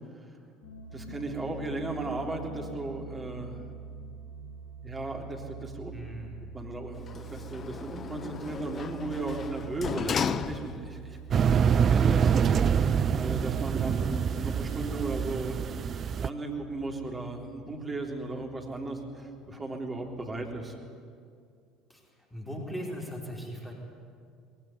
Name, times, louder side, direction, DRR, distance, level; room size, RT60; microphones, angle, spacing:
sound 1, 0.6-20.5, right 5 dB, 70° left, 5.2 m, -46 dB
voice 1, 0.9-3.6 4.8-5.9 6.5-11.2 11.9-12.3 13.1-15.7 16.2-20.8, right 2 dB, 20° right, 1 dB, 3.6 m, -36 dB
voice 2, 5.9-6.4 21.9-22.0 22.3-23.7, equal, 10° left, -1 dB, 4.7 m, -38 dB
Sliding door, 6.9-11.1 11.5-11.6, left 7 dB, 35° left, 0.7 m, -35 dB
sound 2, 11.3-16.3, right 7 dB, 40° right, 0.5 m, -25 dB
20.0 x 18.0 x 9.7 m, 2.3 s
figure-of-eight pair, 65°, 0 cm